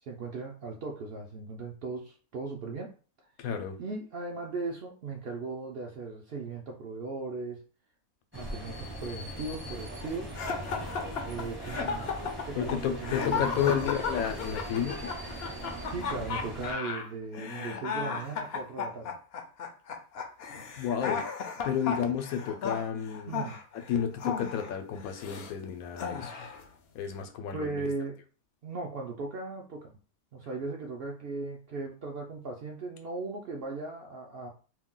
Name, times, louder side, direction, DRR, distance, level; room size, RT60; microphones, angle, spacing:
voice 1, 0.0-2.9 3.8-7.6 8.3-10.4 11.2-12.1 12.5-13.9 15.9-19.1 23.3-23.6 27.5-28.1 28.6-29.9 30.3-34.5, right 3 dB, 65° right, 1 dB, 0.6 m, -38 dB
voice 2, 3.4-3.8 12.5-15.1 20.8-21.3 21.6-23.3 23.9-26.3 26.9-27.9, left 8 dB, 85° left, 6 dB, 1.0 m, -31 dB
sound 1, 8.3-16.7, right 1 dB, 15° right, 0.5 m, -40 dB
sound 2, 10.3-25.5 26.0-26.6, left 5 dB, 65° left, 0.6 m, -35 dB
2.6 x 2.2 x 3.7 m, 0.37 s
omnidirectional pair, 1.5 m